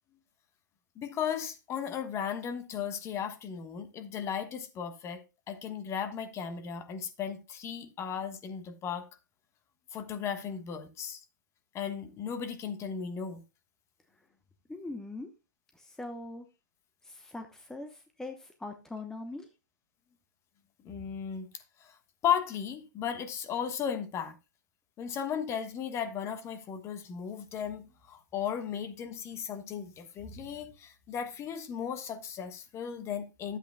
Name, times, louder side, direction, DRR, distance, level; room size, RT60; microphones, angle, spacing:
voice 1, 0.9-5.2 5.5-9.1 9.9-11.2 11.7-13.4 20.8-22.0 22.2-24.4 25.0-33.6, left 8 dB, 25° left, 1.2 m, -35 dB
voice 2, 14.7-15.3 15.7-16.5 17.0-19.5, left 2 dB, 5° left, 0.9 m, -41 dB
12.0 x 8.1 x 2.2 m
hypercardioid pair, 115°, 10 cm